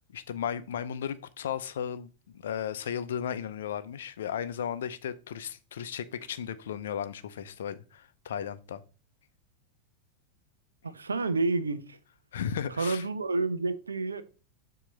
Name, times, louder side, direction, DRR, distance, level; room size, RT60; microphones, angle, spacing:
voice 1, 0.1-8.8 12.3-13.0, left 8 dB, 60° left, 0.6 m, -35 dB
voice 2, 10.8-12.0 12.7-14.2, right 3 dB, 75° right, 0.6 m, -29 dB
7.2 x 2.9 x 5.2 m
figure-of-eight pair, 90°, 0 cm